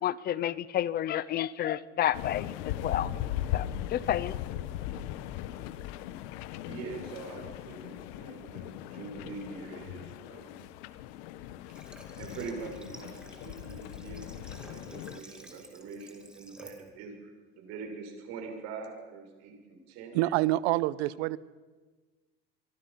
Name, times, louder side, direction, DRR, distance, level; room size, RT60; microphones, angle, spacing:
voice 1, 0.0-3.1 3.5-4.4, left 11 dB, 30° left, 18 dB, 0.7 m, -30 dB
sound 1, 2.1-15.2, left 12 dB, 75° left, 1.2 m, -39 dB
voice 2, 6.6-10.6 11.6-11.7 12.2-20.2, right 4 dB, 55° right, 2 dB, 6.4 m, -44 dB
Water / Water tap faucet, 11.7-16.9, right 1 dB, 5° right, 2.3 m, -53 dB
voice 3, 20.1-21.4, right 17 dB, 90° right, 18 dB, 1.0 m, -27 dB
27.0 x 24.0 x 5.8 m, 1.3 s
cardioid pair, 160°, 31 cm